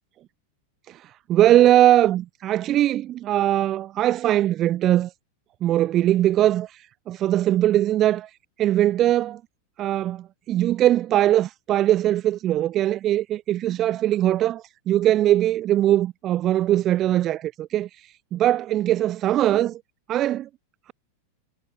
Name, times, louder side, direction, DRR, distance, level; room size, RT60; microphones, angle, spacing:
voice 1, 0.9-5.1 5.6-8.3 8.6-9.4 9.8-17.9 18.3-19.8 20.1-20.5, right 13 dB, 30° right, 1.6 m, -21 dB
figure-of-eight pair, 90°, 0 cm